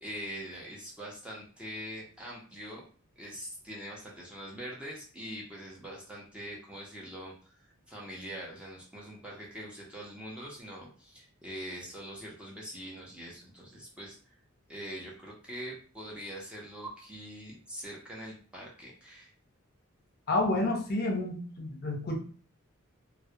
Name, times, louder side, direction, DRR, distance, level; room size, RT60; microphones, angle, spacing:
voice 1, 0.0-2.9 3.2-14.2 14.7-19.3, equal, 5° right, -4 dB, 0.6 m, -43 dB
voice 2, 20.3-22.2, left 2 dB, 50° left, 1 dB, 0.6 m, -29 dB
2.3 x 2.0 x 2.7 m, 0.41 s
head